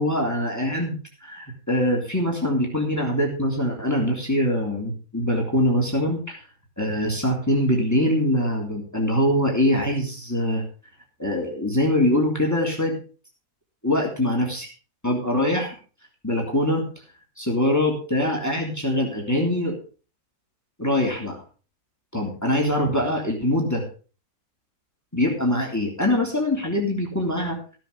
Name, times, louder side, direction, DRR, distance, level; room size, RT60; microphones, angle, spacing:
voice 1, 0.0-6.4 6.8-10.6 11.2-13.0 13.8-14.7 15.0-15.8 16.2-16.9 17.4-19.8 20.8-21.4 22.1-23.8 25.1-27.6, left 1 dB, 10° left, 0 dB, 3.4 m, -23 dB
16.0 x 7.7 x 5.2 m, 0.37 s
omnidirectional pair, 1.6 m